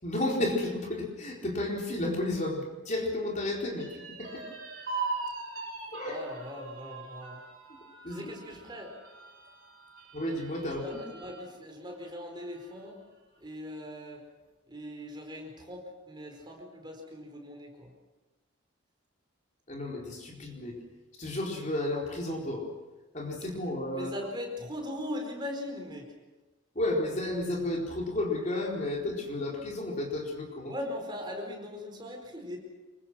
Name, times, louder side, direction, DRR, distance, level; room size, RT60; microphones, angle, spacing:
voice 1, 0.0-4.4 5.9-6.2 8.0-8.2 10.1-10.9 19.7-20.8 21.2-22.7 23.1-24.1 26.7-30.7, left 1 dB, 35° left, -1 dB, 4.3 m, -32 dB
sound 1, 3.8-11.4 11.9-12.0 12.4-13.1, right 4 dB, 45° right, 7.1 m, -41 dB
voice 2, 5.8-7.4 8.1-8.9 10.6-13.0 13.4-14.2 14.7-17.9 23.9-26.1 30.7-32.6, left 1 dB, 20° right, 2 dB, 4.6 m, -40 dB
25.5 x 23.5 x 6.2 m, 1.1 s
head